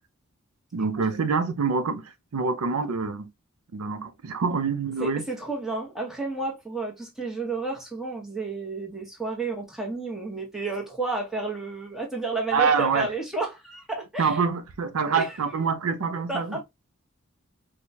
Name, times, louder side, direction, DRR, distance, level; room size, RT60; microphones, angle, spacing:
voice 1, 0.7-3.3 3.7-5.2 12.5-13.1 14.2-16.6, right 5 dB, 80° right, 0.5 m, -26 dB
voice 2, 5.0-14.4 15.1-15.4 16.3-16.6, right 3 dB, ahead, 1.0 m, -31 dB
4.5 x 2.3 x 2.7 m
head